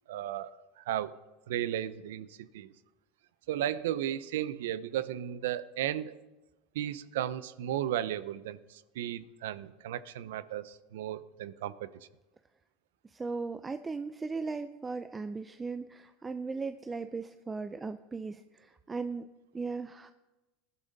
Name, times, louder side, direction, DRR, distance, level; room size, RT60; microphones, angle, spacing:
voice 1, 0.1-0.5 0.8-1.1 1.5-2.7 3.5-6.2 6.7-11.9, right 11 dB, 85° right, 16 dB, 0.7 m, -35 dB
voice 2, 13.0-20.1, right 4 dB, 15° right, 10 dB, 0.5 m, -37 dB
20.0 x 11.0 x 4.1 m, 1.1 s
supercardioid pair, 120°, 0 cm